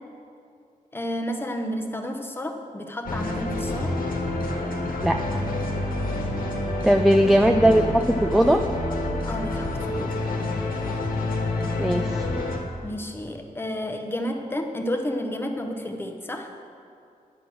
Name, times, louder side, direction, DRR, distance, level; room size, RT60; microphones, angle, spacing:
voice 1, 0.9-4.0 6.9-7.0 9.2-10.2 12.8-16.5, equal, 15° left, 4 dB, 0.8 m, -31 dB
sound 1, 3.1-12.6, left 2 dB, 85° left, 1.5 m, -28 dB
voice 2, 6.8-8.6 11.8-12.2, right 1 dB, ahead, 4 dB, 0.3 m, -19 dB
11.0 x 6.1 x 7.6 m, 2.5 s
wide cardioid pair, 180°, 15 cm